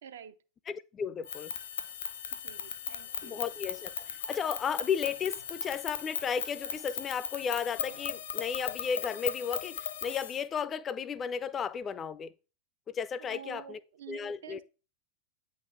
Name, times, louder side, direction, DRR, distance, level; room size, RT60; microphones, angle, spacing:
voice 1, 0.0-0.4 2.3-3.5 13.2-14.6, right 9 dB, 60° right, 0.6 m, -48 dB
voice 2, 0.7-1.5 3.2-3.9 4.3-12.3 12.9-13.8 14.1-14.6, left 7 dB, 25° left, 0.4 m, -34 dB
sound 1, 1.2-10.4, left 8 dB, 60° left, 0.7 m, -38 dB
sound 2, 2.4-8.1, right 1 dB, 85° right, 1.6 m, -60 dB
8.7 x 3.9 x 3.6 m
figure-of-eight pair, 90°, 0 cm